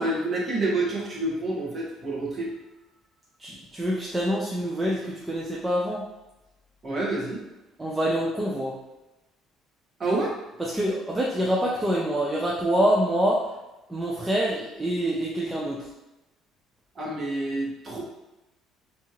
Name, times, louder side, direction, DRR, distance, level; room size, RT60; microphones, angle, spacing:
voice 1, 0.0-2.5 6.8-7.4 10.0-10.3 16.9-18.0, right 2 dB, 30° right, -5 dB, 0.9 m, -28 dB
voice 2, 3.4-6.1 7.8-8.8 10.6-13.5 13.9-15.9, equal, 10° right, -4 dB, 0.3 m, -26 dB
2.8 x 2.4 x 2.8 m, 1.0 s
cardioid pair, 140°, 0 cm